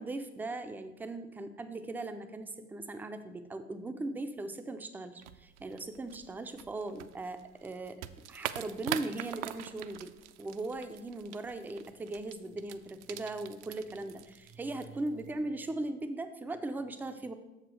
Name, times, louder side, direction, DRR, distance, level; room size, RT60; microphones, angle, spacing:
voice 1, 0.0-8.0 8.3-10.1 10.4-17.3, right 2 dB, 5° right, 9 dB, 0.3 m, -39 dB
sound 1, 5.2-15.4, right 13 dB, 60° right, 0.5 m, -44 dB
7.2 x 5.0 x 5.0 m, 0.98 s
figure-of-eight pair, 65°, 40 cm